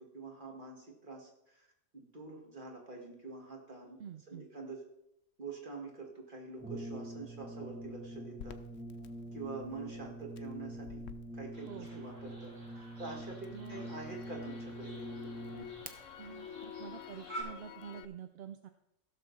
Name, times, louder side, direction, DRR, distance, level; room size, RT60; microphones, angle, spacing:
voice 1, 0.0-1.7 1.9-4.0 4.3-4.8 5.4-8.6 9.3-11.0 11.3-15.3, right 3 dB, 40° right, 0 dB, 2.2 m, -46 dB
voice 2, 4.0-4.5 11.7-12.0 13.5-13.9 15.6-15.7 16.2-18.7, right 7 dB, 65° right, 8 dB, 0.7 m, -48 dB
Brass instrument, 6.6-15.9, right 1 dB, 10° right, 0.5 m, -45 dB
Crackle, 8.4-12.5 12.9-18.0, left 10 dB, 85° left, 1.0 m, -50 dB
sound 1, 11.5-17.4, right 1 dB, 80° right, 3.4 m, -51 dB
15.5 x 6.5 x 4.1 m, 0.82 s
omnidirectional pair, 1.3 m